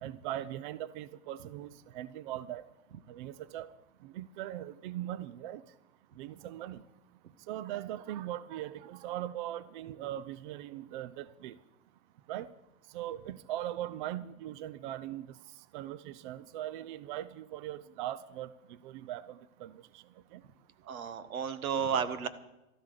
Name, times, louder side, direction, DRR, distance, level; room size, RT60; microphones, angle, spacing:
voice 1, 0.0-1.7 1.9-2.7 3.1-3.7 4.0-5.6 6.2-6.8 7.5-11.5 12.3-12.5 12.9-15.3 15.7-18.5 18.8-20.0 20.3-20.4, right 13 dB, 35° right, 16 dB, 0.5 m, -40 dB
voice 2, 20.9-22.3, right 7 dB, 75° right, 11 dB, 1.6 m, -32 dB
13.0 x 13.0 x 6.7 m, 0.96 s
hypercardioid pair, 125°, 43 cm